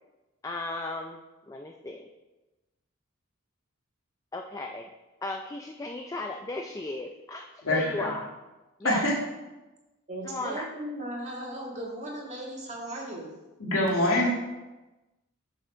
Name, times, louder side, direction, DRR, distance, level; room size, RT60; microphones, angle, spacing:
voice 1, 0.4-2.1 4.3-4.9 5.2-8.3 8.8-9.1 10.2-10.7, left 2 dB, 15° left, 3 dB, 0.4 m, -36 dB
voice 2, 7.6-8.1 8.8-9.2 13.6-14.3, left 1 dB, 80° left, -3 dB, 2.1 m, -24 dB
voice 3, 10.1-13.3, right 1 dB, 35° right, -3 dB, 1.8 m, -37 dB
7.0 x 6.1 x 4.4 m, 1.1 s
head